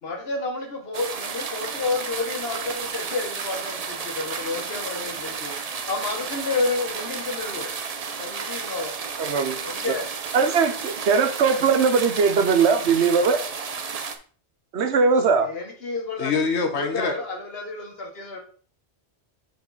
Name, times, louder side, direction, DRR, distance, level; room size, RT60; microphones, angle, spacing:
voice 1, 0.0-5.5 5.9-7.7 8.2-8.9 9.6-10.0 15.4-16.4 16.7-18.4, left 3 dB, 65° left, 2 dB, 1.6 m, -30 dB
sound 1, 0.9-14.2, right 5 dB, 45° right, 0.6 m, -32 dB
voice 2, 9.2-9.6 10.3-13.4 14.7-15.5, right 5 dB, 85° right, 9 dB, 1.1 m, -20 dB
voice 3, 16.2-17.1, left 4 dB, 85° left, 5 dB, 1.3 m, -24 dB
5.3 x 4.9 x 3.9 m, 0.42 s
omnidirectional pair, 1.1 m